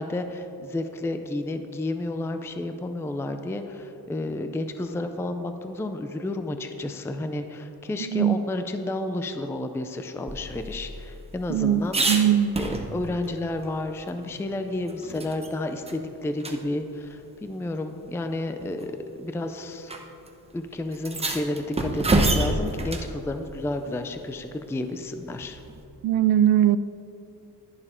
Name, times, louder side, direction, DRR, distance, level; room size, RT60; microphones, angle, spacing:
voice 1, 0.0-12.1 12.6-18.9 19.2-19.9 20.5-25.6, left 2 dB, 5° left, 8 dB, 0.4 m, -31 dB
voice 2, 8.0-8.4 11.5-12.5 26.0-26.8, right 10 dB, 60° right, 15 dB, 0.5 m, -21 dB
sound 1, 10.3-13.3 13.6-13.7 14.1-15.5 15.9-16.0 16.4-16.6 17.6-17.7 18.6-18.9 19.9-20.0 20.3-20.4 20.9-23.1 25.4-25.8, right 2 dB, 15° right, 0.9 m, -28 dB
11.5 x 11.0 x 4.3 m, 2.9 s
wide cardioid pair, 145°, 40 cm